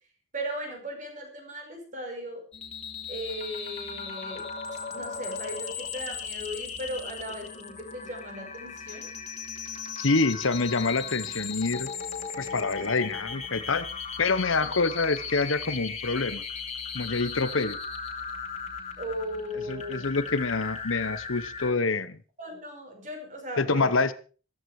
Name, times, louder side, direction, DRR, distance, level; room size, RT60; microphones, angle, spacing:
voice 1, 0.3-2.4 3.1-4.5 4.9-9.1 12.8-12.9 14.6-14.7 19.0-20.1 22.4-24.0, equal, 40° right, 3 dB, 5.1 m, -37 dB
sound 1, 2.5-21.7, left 6 dB, 30° left, 2.7 m, -37 dB
voice 2, 10.0-11.9 12.4-13.9 14.2-16.4 16.9-17.8 19.7-22.2 23.6-24.1, left 3 dB, 75° left, 13 dB, 1.0 m, -26 dB
14.5 x 13.5 x 4.8 m, 0.38 s
head